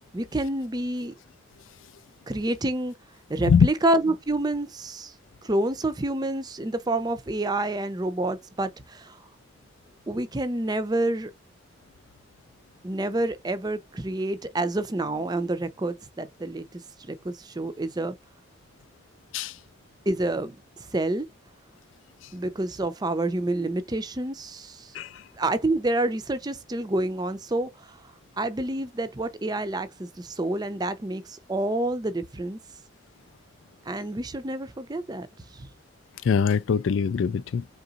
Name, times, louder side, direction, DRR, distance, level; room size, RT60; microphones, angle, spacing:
voice 1, 0.1-1.1 2.3-2.9 3.3-5.1 5.4-9.2 10.1-11.3 12.8-18.2 20.1-20.6 20.9-21.3 22.3-24.9 25.4-28.0 28.4-32.6 33.9-35.3 35.5-35.7, right 2 dB, 20° right, 0.5 m, -28 dB
voice 2, 24.9-25.3 36.2-37.7, left 6 dB, 90° left, 0.4 m, -22 dB
3.9 x 3.7 x 2.4 m
head